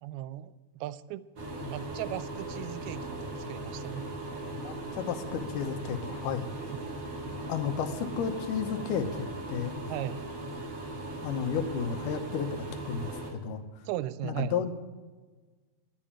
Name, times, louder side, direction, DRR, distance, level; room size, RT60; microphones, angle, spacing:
voice 1, 0.0-1.2 1.7-4.1 6.7-6.8 9.9-10.2 13.9-14.6, right 14 dB, 90° right, 16 dB, 2.5 m, -37 dB
sound 1, 1.4-13.3, right 1 dB, 35° right, 2.1 m, -38 dB
voice 2, 4.6-6.5 7.5-9.8 11.2-13.6 14.2-14.7, left 7 dB, 70° left, 7 dB, 2.3 m, -32 dB
11.0 x 8.9 x 8.7 m, 1.4 s
omnidirectional pair, 4.4 m